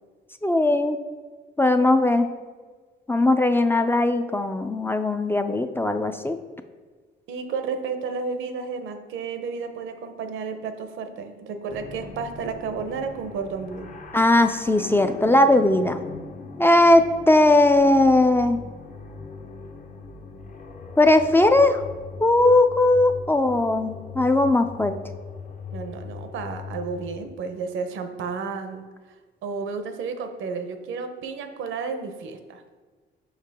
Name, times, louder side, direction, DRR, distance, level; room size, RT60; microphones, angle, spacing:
voice 1, 0.4-1.0 1.6-2.3 3.1-6.4 14.1-16.0 16.6-18.6 21.0-21.8 22.2-24.9, left 2 dB, 10° left, 8 dB, 0.3 m, -19 dB
voice 2, 7.3-13.9 25.7-28.8 29.4-32.6, right 5 dB, 80° right, 7 dB, 0.7 m, -32 dB
sound 1, 11.7-27.2, left 5 dB, 40° left, 0.7 m, -40 dB
5.8 x 4.8 x 3.5 m, 1.4 s
cardioid pair, 90°, 20 cm